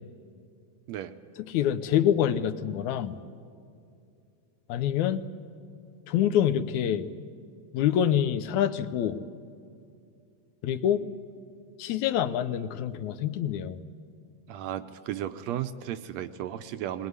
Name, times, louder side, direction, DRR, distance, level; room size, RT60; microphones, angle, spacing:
voice 1, 1.5-3.2 4.7-5.3 6.1-7.1 7.7-9.2 10.6-11.1 11.8-13.8, left 10 dB, 75° left, 11 dB, 2.1 m, -26 dB
voice 2, 14.5-17.1, right 11 dB, 75° right, 11 dB, 1.8 m, -34 dB
21.0 x 20.5 x 9.6 m, 2.4 s
omnidirectional pair, 3.6 m